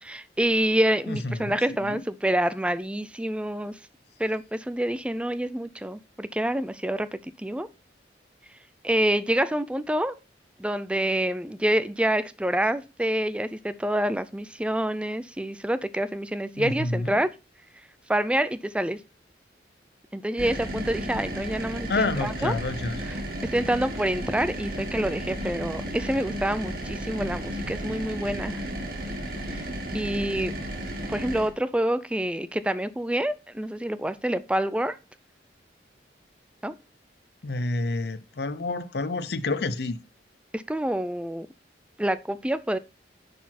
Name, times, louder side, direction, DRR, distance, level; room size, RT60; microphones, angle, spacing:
voice 1, 0.0-3.8 4.2-7.7 8.8-10.1 10.6-17.3 18.1-19.0 20.1-22.6 23.5-28.6 29.4-29.6 29.9-30.5 31.1-35.0 36.6-36.7 40.5-41.5 42.0-42.8, right 1 dB, 5° right, 0.4 m, -27 dB
voice 2, 1.1-2.0 16.5-17.2 21.9-23.0 37.4-40.0, left 2 dB, 60° left, 0.7 m, -29 dB
sound 1, 20.4-31.5, right 1 dB, 55° right, 1.8 m, -33 dB
10.0 x 4.3 x 4.2 m
head